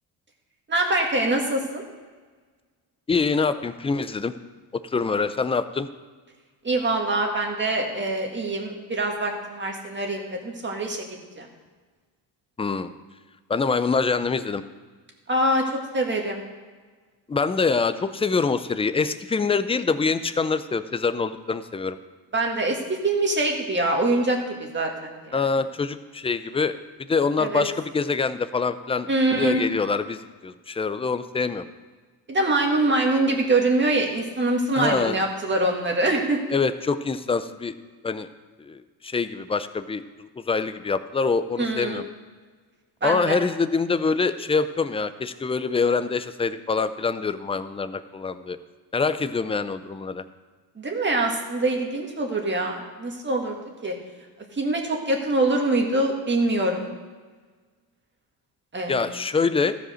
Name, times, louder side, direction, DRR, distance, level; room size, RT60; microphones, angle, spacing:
voice 1, 0.7-1.8 6.6-11.1 11.4-11.5 15.3-15.6 15.9-16.4 22.3-22.8 23.0-25.4 27.4-27.6 29.1-29.6 32.3-36.4 41.6-42.1 43.0-43.4 50.8-53.6 53.8-53.9 54.5-56.9 58.7-59.2, right 2 dB, 25° right, 1 dB, 1.9 m, -24 dB
voice 2, 3.1-4.3 4.7-5.9 12.6-12.9 13.5-14.6 17.3-22.0 25.3-26.7 27.1-31.7 34.8-35.2 36.5-37.7 38.0-38.3 38.6-40.0 40.5-42.0 43.0-48.6 48.9-50.2 58.9-59.8, left 4 dB, 15° left, 12 dB, 0.4 m, -25 dB
13.5 x 5.1 x 6.3 m, 1.4 s
cardioid pair, 100°, 44 cm